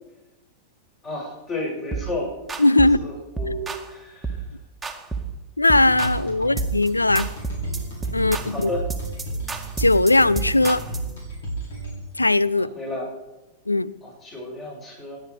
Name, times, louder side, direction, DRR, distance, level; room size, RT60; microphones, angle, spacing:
voice 1, 1.0-2.3 2.8-4.5 6.4-6.5 8.2-8.9 12.6-13.1 14.0-15.2, left 1 dB, 25° left, -2 dB, 7.3 m, -32 dB
sound 1, 1.9-2.1 2.5-3.0 3.4-3.9 4.2-4.5 4.8-5.4 5.7-6.2 6.6-6.9 7.1-11.1, right 5 dB, 10° right, 1.9 m, -31 dB
voice 2, 2.6-3.0 5.6-7.3 8.1-8.7 9.8-10.8 12.2-12.7 13.7-13.9, left 2 dB, 85° left, 19 dB, 0.6 m, -19 dB
sound 2, 5.7-12.3, right 2 dB, 60° left, 6.8 m, -32 dB
28.0 x 10.5 x 5.0 m, 1.0 s
figure-of-eight pair, 90°, 0 cm